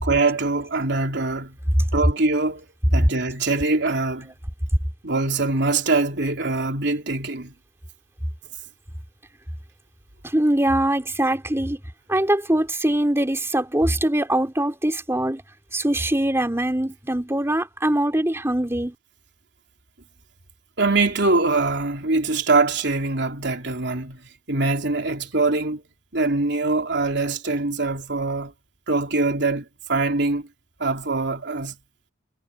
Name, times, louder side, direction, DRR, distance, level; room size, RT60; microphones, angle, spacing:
voice 1, 0.0-1.6 1.9-2.6 2.9-4.3 5.0-7.5 20.8-24.2 24.5-25.8 26.1-28.5 28.9-30.5 30.8-31.7, right 3 dB, 65° right, 3.7 m, -23 dB
voice 2, 10.2-11.8 12.1-15.4 15.7-18.9, right 1 dB, 15° right, 3.3 m, -22 dB
head